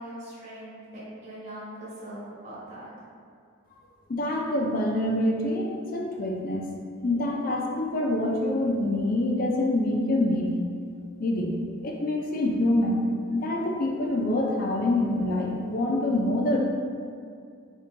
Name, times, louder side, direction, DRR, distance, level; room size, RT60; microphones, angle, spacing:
voice 1, 0.0-2.9, right 1 dB, 35° right, -10 dB, 1.1 m, -41 dB
voice 2, 4.1-6.7 7.0-10.5 11.2-11.5 11.8-13.0 13.3-16.6, left 1 dB, 40° left, 0 dB, 0.4 m, -26 dB
4.4 x 2.6 x 2.6 m, 2.3 s
head